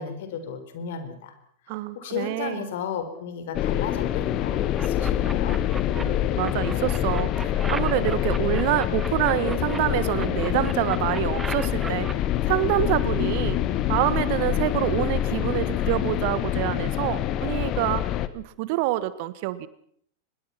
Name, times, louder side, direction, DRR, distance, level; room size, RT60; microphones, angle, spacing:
voice 1, 0.0-1.3 1.7-5.6, left 7 dB, 55° left, 9 dB, 4.3 m, -34 dB
voice 2, 1.7-2.7 6.0-12.1 12.4-13.6 13.9-18.0 18.3-19.7, right 16 dB, 45° right, 16 dB, 1.5 m, -26 dB
sound 1, 3.5-18.3, left 11 dB, 35° left, 1.3 m, -26 dB
sound 2, 4.7-6.0 6.4-9.8 10.1-12.1, right 4 dB, 10° right, 0.8 m, -37 dB
24.5 x 21.0 x 5.9 m, 0.65 s
figure-of-eight pair, 90°, 0 cm